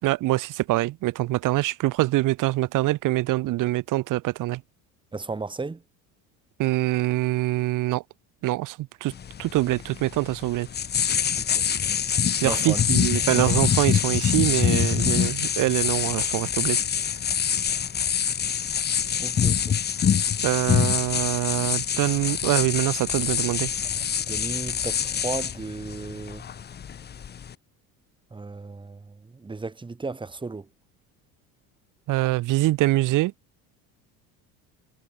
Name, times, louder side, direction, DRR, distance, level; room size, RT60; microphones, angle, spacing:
voice 1, 0.0-4.6 6.6-8.0 8.4-9.1 9.4-10.7 12.4-16.8 20.4-23.7 32.1-33.3, right 18 dB, 65° right, 4.3 m, -24 dB
voice 2, 5.1-5.8 11.4-11.6 12.4-12.8 13.3-13.5 19.2-19.8 24.3-26.4 28.3-30.7, right 3 dB, 15° right, 3.3 m, -35 dB
sound 1, 9.1-27.5, left 8 dB, 30° left, 1.4 m, -25 dB
cardioid pair, 125°, 35 cm